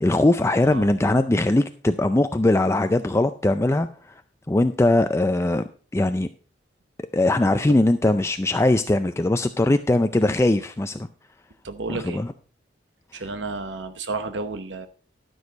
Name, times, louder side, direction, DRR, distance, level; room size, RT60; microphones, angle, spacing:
voice 1, 0.0-4.1 4.5-5.6 5.9-6.3 7.1-11.1 11.9-12.3, left 2 dB, 15° left, 9 dB, 0.4 m, -20 dB
voice 2, 11.6-12.2 13.1-14.9, right 3 dB, 80° right, 9 dB, 0.9 m, -31 dB
12.0 x 6.4 x 5.1 m, 0.40 s
head